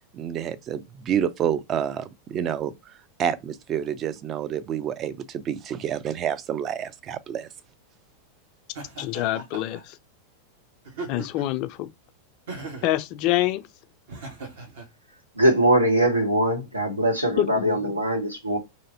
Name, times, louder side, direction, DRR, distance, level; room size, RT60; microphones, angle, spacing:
voice 1, 0.1-7.5, right 9 dB, 30° right, 0.4 m, -29 dB
Laughter, 8.7-9.8 10.8-11.6 12.5-13.0 14.1-14.9, right 3 dB, 60° right, 1.0 m, -38 dB
voice 2, 9.0-9.9 11.1-11.9 12.8-13.6 17.4-17.9, left 15 dB, 40° left, 0.3 m, -26 dB
voice 3, 15.3-18.6, right 1 dB, 85° right, 0.9 m, -22 dB
3.0 x 2.6 x 2.5 m
figure-of-eight pair, 90°, 0 cm